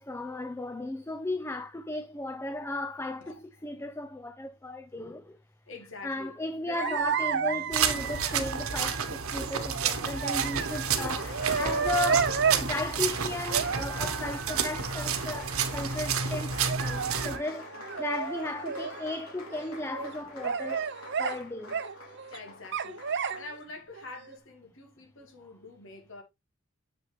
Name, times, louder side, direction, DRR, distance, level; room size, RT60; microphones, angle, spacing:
voice 1, 0.0-5.4 6.0-20.9 21.2-21.8, left 2 dB, 10° left, 0.5 m, -35 dB
voice 2, 5.7-6.3 6.7-7.0 10.7-11.3 17.0-17.1 18.0-18.1 22.3-26.2, left 3 dB, 65° left, 2.4 m, -45 dB
sound 1, 6.7-12.7 13.4-15.1 16.6-19.2 19.5-20.1 20.4-21.4 21.7-22.4 22.7-23.5 23.9-24.4, right 6 dB, 55° right, 0.7 m, -32 dB
sound 2, 7.7-17.4, right 6 dB, 85° right, 1.0 m, -30 dB
Applause, 10.3-23.6, left 2 dB, 85° left, 3.0 m, -45 dB
7.8 x 6.1 x 3.2 m
head